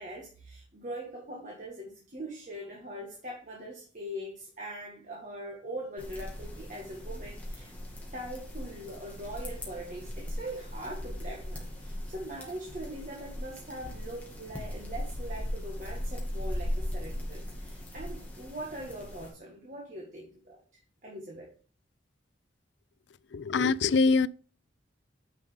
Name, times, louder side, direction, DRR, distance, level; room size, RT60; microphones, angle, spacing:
voice 1, 0.0-7.7 8.1-21.5, right 1 dB, 40° right, 1.7 m, -42 dB
sound 1, 6.0-19.3, left 1 dB, 10° left, 2.1 m, -38 dB
voice 2, 23.3-24.3, left 4 dB, 65° left, 0.4 m, -24 dB
9.5 x 5.3 x 3.5 m
head